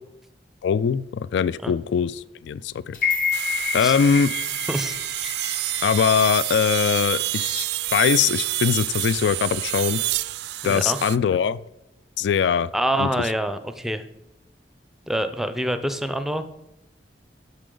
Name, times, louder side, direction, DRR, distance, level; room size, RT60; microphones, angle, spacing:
voice 1, 0.6-3.0 3.7-4.3 5.8-7.7 7.9-10.0 10.6-11.6 12.2-12.7 13.0-13.1, left 7 dB, 75° left, 18 dB, 0.3 m, -21 dB
sound 1, 2.9-7.1 7.5-7.6, left 5 dB, 50° left, 1.1 m, -29 dB
sound 2, 3.3-11.2, right 17 dB, 65° right, 0.3 m, -28 dB
voice 2, 10.6-11.0 12.7-14.0 15.1-16.4, right 1 dB, ahead, 10 dB, 0.5 m, -26 dB
9.9 x 6.7 x 3.8 m, 0.89 s
head